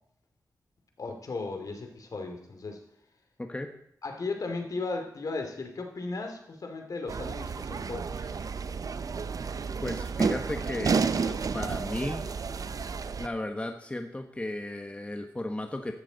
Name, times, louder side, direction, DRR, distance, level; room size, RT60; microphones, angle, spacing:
voice 1, 1.0-2.8 4.0-8.4, left 3 dB, 65° left, 5 dB, 2.5 m, -36 dB
voice 2, 3.4-3.7 9.8-12.3 13.2-15.9, left 1 dB, 20° left, 5 dB, 1.2 m, -35 dB
sound 1, 7.1-13.3, right 5 dB, 65° right, 0.6 m, -31 dB
14.0 x 12.5 x 4.0 m, 0.70 s
wide cardioid pair, 75°, 7 cm